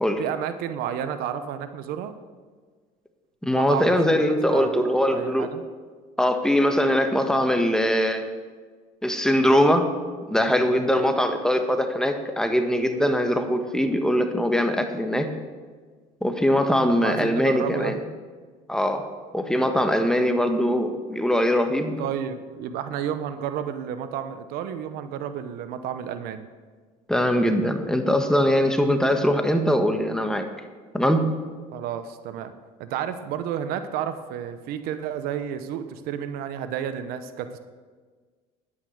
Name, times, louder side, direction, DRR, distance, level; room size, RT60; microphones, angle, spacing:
voice 1, 0.2-2.1 3.5-4.2 4.5-5.6 16.9-18.0 22.0-26.4 31.7-32.5 32.8-37.6, right 9 dB, 75° right, 10 dB, 1.0 m, -31 dB
voice 2, 3.4-5.5 6.2-8.3 9.0-9.9 10.3-15.3 16.2-18.0 18.7-19.0 19.3-21.9 27.1-30.5 30.9-31.3, equal, 5° left, 6 dB, 1.4 m, -22 dB
10.5 x 9.7 x 6.5 m, 1.5 s
supercardioid pair, 90°, 16 cm